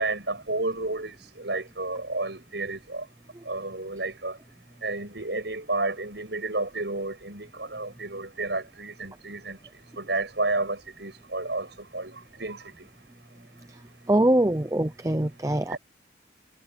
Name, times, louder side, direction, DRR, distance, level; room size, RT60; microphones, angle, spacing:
voice 1, 0.0-3.1 3.4-4.4 4.8-9.6 10.0-12.9 15.7-15.8, right 2 dB, 75° right, 6.1 m, -31 dB
voice 2, 14.1-15.8, right 1 dB, 15° right, 0.6 m, -23 dB
head